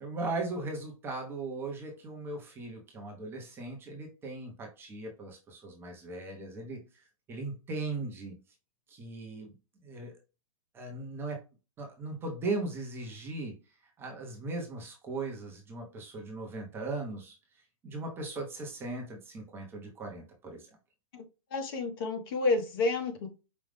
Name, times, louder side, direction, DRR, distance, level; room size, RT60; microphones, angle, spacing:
voice 1, 0.0-6.8 7.3-8.4 8.9-9.5 9.8-10.1 10.7-11.4 11.8-13.6 14.0-17.4 17.8-20.7, right 3 dB, 15° right, 1 dB, 0.8 m, -38 dB
voice 2, 21.5-23.3, left 3 dB, 45° left, 5 dB, 1.1 m, -30 dB
5.1 x 2.3 x 3.4 m, 0.30 s
hypercardioid pair, 155°, 18 cm